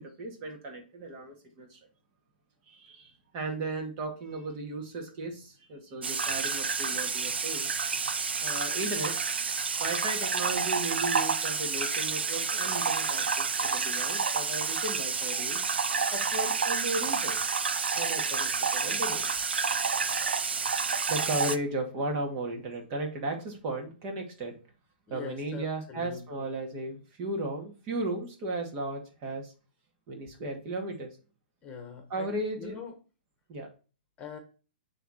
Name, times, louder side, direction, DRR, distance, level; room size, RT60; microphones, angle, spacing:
voice 1, 0.0-1.8 2.7-7.7 8.4-9.2 9.8-15.7 16.1-17.4 18.0-19.3 21.1-24.5 25.1-29.5 30.1-31.2 32.1-32.8 33.5-33.7, right 2 dB, 35° right, 2 dB, 2.3 m, -35 dB
sound 1, 6.0-21.6, right 5 dB, 85° right, 0.7 m, -29 dB
voice 2, 25.1-26.5 31.6-32.9 34.2-34.4, left 6 dB, 25° left, 5 dB, 1.3 m, -43 dB
8.9 x 3.6 x 4.4 m, 0.34 s
hypercardioid pair, 130°, 6 cm